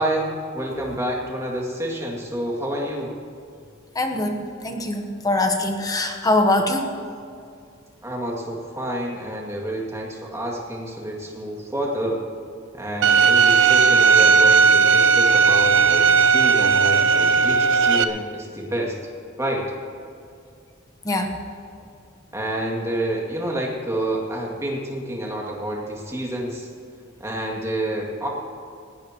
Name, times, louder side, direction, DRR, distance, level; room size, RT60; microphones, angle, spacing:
voice 1, 0.0-3.1 8.0-12.2 12.7-19.0 19.4-19.7 22.3-26.7 27.2-28.3, right 1 dB, 15° right, -2 dB, 2.4 m, -28 dB
voice 2, 4.0-6.9 21.0-21.3, left 2 dB, 20° left, 4 dB, 1.1 m, -23 dB
Bowed string instrument, 13.0-18.0, right 5 dB, 70° right, 0.7 m, -16 dB
20.0 x 17.0 x 3.0 m, 2.4 s
head